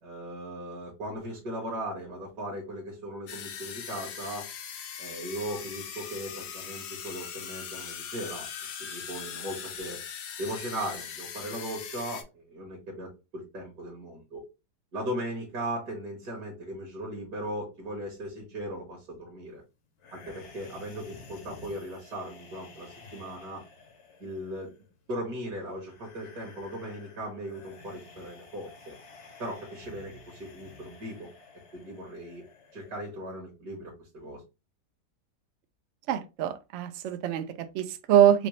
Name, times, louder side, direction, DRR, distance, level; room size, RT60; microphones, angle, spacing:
voice 1, 0.0-4.5 5.0-8.5 8.8-10.0 10.4-14.4 14.9-19.6 20.1-23.6 24.2-24.7 25.1-28.9 29.4-31.3 31.7-32.4 32.7-34.4, right 1 dB, 65° right, 1.6 m, -38 dB
sound 1, 3.3-12.2, left 8 dB, 80° left, 1.3 m, -40 dB
sound 2, 20.0-33.0, left 4 dB, 55° left, 0.9 m, -52 dB
voice 2, 36.1-38.5, right 10 dB, 80° right, 0.6 m, -24 dB
5.0 x 2.0 x 3.0 m
omnidirectional pair, 1.8 m